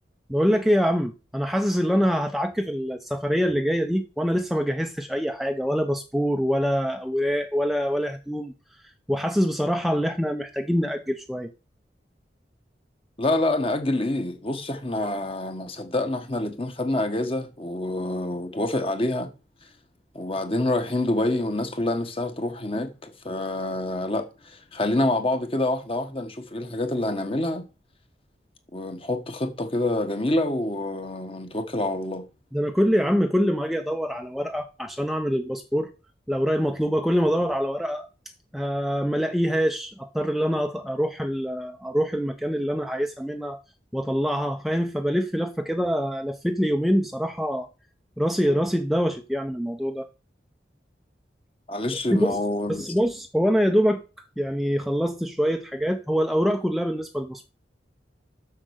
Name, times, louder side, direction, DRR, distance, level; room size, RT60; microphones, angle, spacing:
voice 1, 0.3-11.5 32.5-35.9 36.3-38.1 38.5-43.6 43.9-47.7 48.2-50.1 52.2-52.4 52.7-54.0 54.4-57.4, equal, ahead, 0.5 m, -25 dB
voice 2, 13.2-19.3 20.1-27.6 28.7-32.2 51.7-52.8, left 1 dB, 30° left, 1.3 m, -27 dB
7.6 x 6.5 x 6.4 m
head